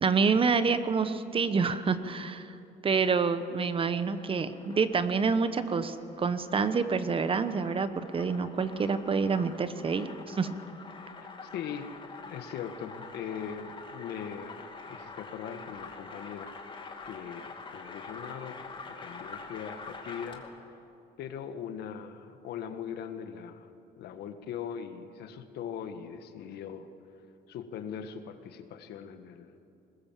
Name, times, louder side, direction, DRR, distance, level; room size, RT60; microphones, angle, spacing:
voice 1, 0.0-2.5 2.8-10.5, right 5 dB, 30° right, 11 dB, 1.1 m, -27 dB
sound 1, 4.0-20.6, left 4 dB, 30° left, 2.5 m, -46 dB
voice 2, 11.2-11.9 12.2-16.6 17.0-20.8 21.2-26.9 27.5-29.6, left 8 dB, 75° left, 8 dB, 1.6 m, -40 dB
21.5 x 20.0 x 7.6 m, 2.7 s
cardioid pair, 110°, 17 cm